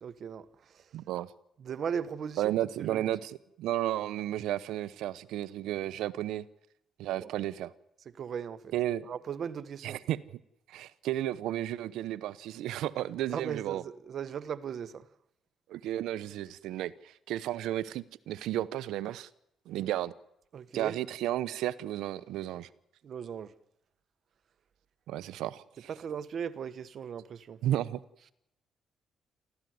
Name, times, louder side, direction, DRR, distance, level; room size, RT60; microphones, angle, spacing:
voice 1, 0.0-0.8 1.6-3.1 7.2-7.4 8.2-8.7 9.0-10.0 13.3-15.1 20.5-21.0 23.0-23.5 25.9-27.6, right 7 dB, 60° right, 1.4 m, -38 dB
voice 2, 0.9-1.3 2.4-3.3 3.6-6.4 7.0-7.7 8.7-9.1 9.8-10.2 10.7-13.8 15.7-19.3 19.7-20.1 20.7-22.7 25.1-25.9 27.6-28.0, right 13 dB, 90° right, 0.9 m, -33 dB
28.0 x 14.5 x 9.5 m
cardioid pair, 90°, 0 cm